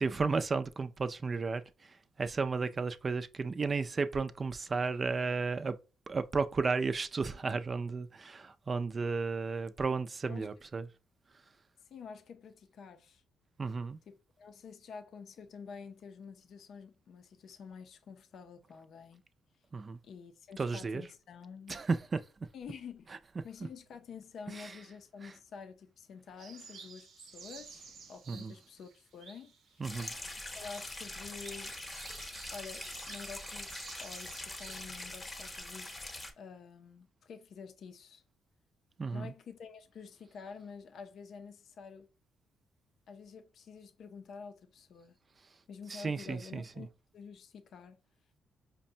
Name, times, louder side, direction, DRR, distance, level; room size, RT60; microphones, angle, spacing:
voice 1, 0.0-1.9 2.2-5.8 6.1-10.9 13.6-14.0 19.7-20.0 20.6-21.0 21.7-22.2 24.5-24.7 28.3-28.5 29.8-30.1 39.0-39.3 45.9-46.9, right 4 dB, 35° right, 0.4 m, -33 dB
voice 2, 11.9-13.2 14.1-19.2 20.0-21.8 22.5-23.2 23.4-29.9 30.5-31.7 32.5-36.0 36.4-38.2 39.1-42.1 43.1-45.1 45.7-46.9 47.1-48.0, left 6 dB, 65° left, 0.5 m, -49 dB
sound 1, 26.4-35.6, right 5 dB, 70° right, 0.7 m, -53 dB
sound 2, 29.8-36.3, left 1 dB, 20° left, 0.8 m, -43 dB
5.1 x 2.1 x 2.7 m
cardioid pair, 90°, 0 cm